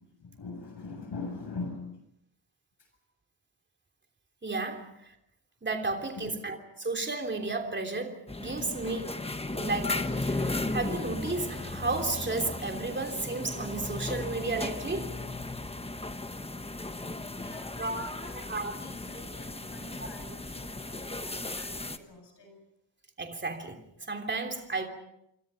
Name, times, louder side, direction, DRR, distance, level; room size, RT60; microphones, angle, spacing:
voice 1, 0.0-2.0 2.8-2.9 6.2-6.4 17.3-18.5 18.8-22.6, left 3 dB, 60° left, 7.6 m, -43 dB
voice 2, 4.4-4.9 5.6-9.1 9.5-15.2 17.8-18.7 19.1-19.2 23.2-23.8 24.1-24.9, right 3 dB, 25° right, 3.1 m, -33 dB
sound 1, 8.3-22.0, left 2 dB, 15° left, 1.2 m, -36 dB
27.5 x 26.0 x 5.6 m
wide cardioid pair, 150°, 46 cm